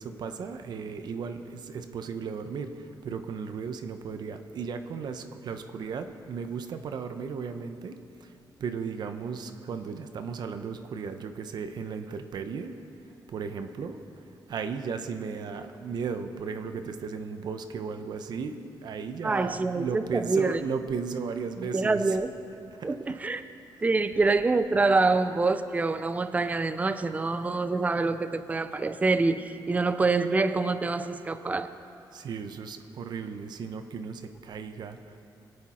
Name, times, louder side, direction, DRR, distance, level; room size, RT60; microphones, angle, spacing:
voice 1, 0.0-8.3 8.6-12.8 13.3-22.2 22.7-23.4 32.1-35.2, right 5 dB, 60° right, 8 dB, 0.8 m, -36 dB
voice 2, 19.2-20.6 21.6-22.3 22.8-23.4 23.8-31.7, right 3 dB, 20° right, 11 dB, 0.5 m, -26 dB
22.5 x 8.7 x 4.3 m, 2.7 s
cardioid pair, 125°, 8 cm